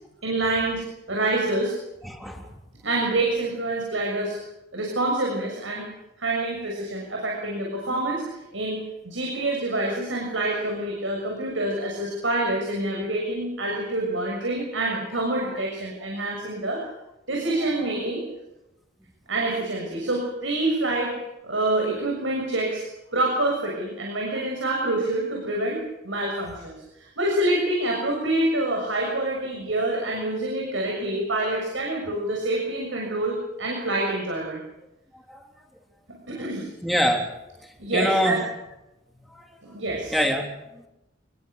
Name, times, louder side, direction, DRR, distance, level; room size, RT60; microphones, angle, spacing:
voice 1, 0.2-1.7 2.8-4.4 4.7-5.9 6.2-8.2 8.5-16.8 17.3-18.2 19.3-21.1 21.4-22.8 23.1-25.8 26.0-34.6 36.3-36.7 37.8-38.4 39.6-40.1, right 2 dB, 85° right, 0 dB, 6.7 m, -26 dB
voice 2, 2.0-2.4 15.5-15.6 35.3-35.4 36.8-37.3 37.9-38.4 39.4-39.5 40.1-40.5, equal, ahead, 1 dB, 3.6 m, -24 dB
27.0 x 21.5 x 6.7 m, 0.93 s
head